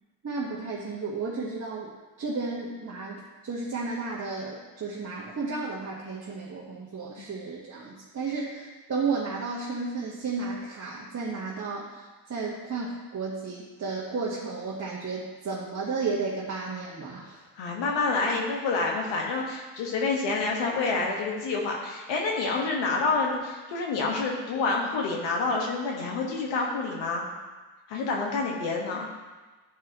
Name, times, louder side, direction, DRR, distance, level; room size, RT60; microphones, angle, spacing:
voice 1, 0.2-1.9 2.2-12.0 12.3-17.4, right 4 dB, 35° right, -5 dB, 1.4 m, -33 dB
voice 2, 17.6-27.3 27.9-29.1, left 3 dB, 80° left, 0 dB, 1.6 m, -28 dB
11.0 x 4.7 x 3.0 m, 1.3 s
supercardioid pair, 65°, 44 cm